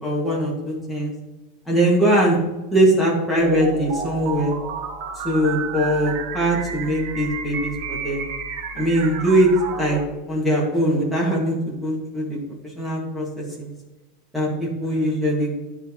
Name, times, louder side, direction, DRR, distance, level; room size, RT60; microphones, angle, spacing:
voice 1, 0.0-1.1 1.7-2.4 2.7-4.5 5.2-8.2 8.8-9.5 9.8-10.0 10.3-12.4 12.8-13.7 14.3-15.6, right 1 dB, ahead, -4 dB, 1.6 m, -21 dB
sound 1, 3.3-10.0, right 5 dB, 45° right, 1.0 m, -31 dB
10.0 x 6.3 x 2.9 m, 1.1 s
supercardioid pair, 180°, 0 cm